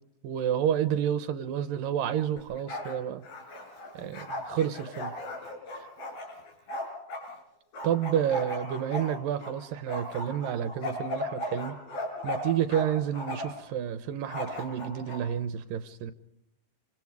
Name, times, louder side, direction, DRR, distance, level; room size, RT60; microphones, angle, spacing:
voice 1, 0.2-3.2 3.9-5.1 5.7-5.9 7.8-11.8 12.2-16.1, right 9 dB, 75° right, 11 dB, 2.6 m, -30 dB
Bark, 2.4-3.0 3.2-7.3 7.7-9.5 9.9-12.9 13.1-13.6 14.3-15.2, left 1 dB, 70° left, 7.0 m, -36 dB
29.0 x 25.5 x 4.8 m, 0.80 s
omnidirectional pair, 4.2 m